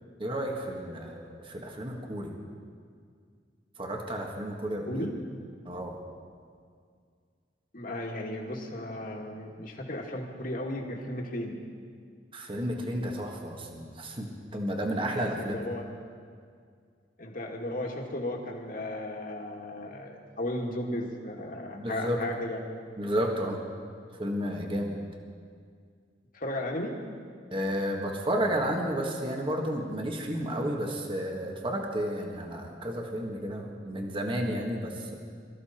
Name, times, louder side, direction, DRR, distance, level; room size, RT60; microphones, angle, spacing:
voice 1, 0.2-2.4 3.8-5.1 5.7-6.0 12.3-15.6 21.7-22.2 23.0-23.6 24.2-25.0 27.5-35.2, equal, 30° right, 1 dB, 1.7 m, -32 dB
voice 2, 4.6-5.1 7.7-11.6 15.4-15.8 17.2-22.6 26.3-26.9, left 1 dB, 50° left, 1 dB, 2.2 m, -35 dB
23.5 x 14.0 x 4.4 m, 2.1 s
head